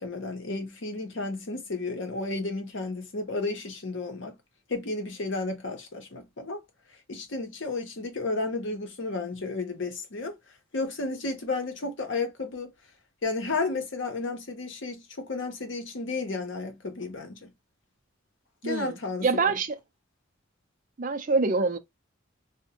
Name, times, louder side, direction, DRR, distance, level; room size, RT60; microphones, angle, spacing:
voice 1, 0.0-4.3 4.7-6.6 7.1-10.3 10.7-12.7 13.2-17.5 18.6-19.6, left 3 dB, 65° left, 0.8 m, -32 dB
voice 2, 18.6-19.8 21.0-21.8, right 4 dB, 40° right, 0.4 m, -26 dB
2.5 x 2.1 x 2.8 m
head